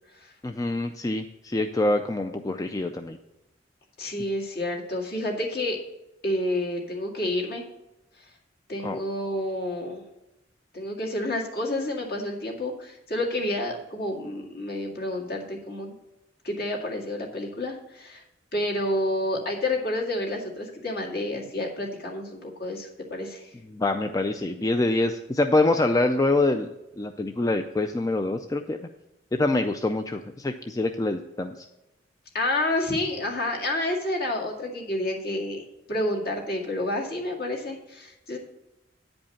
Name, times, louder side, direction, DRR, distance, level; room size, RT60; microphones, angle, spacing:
voice 1, 0.4-3.2 8.8-9.0 23.7-26.7 27.0-28.8 29.3-31.5, left 2 dB, 20° left, 6 dB, 0.4 m, -25 dB
voice 2, 4.0-5.8 6.2-7.6 8.2-8.3 8.7-10.0 10.7-16.0 16.4-18.2 18.5-23.6 32.3-38.4, left 1 dB, 55° left, 0 dB, 2.1 m, -29 dB
9.7 x 5.3 x 7.1 m, 0.93 s
head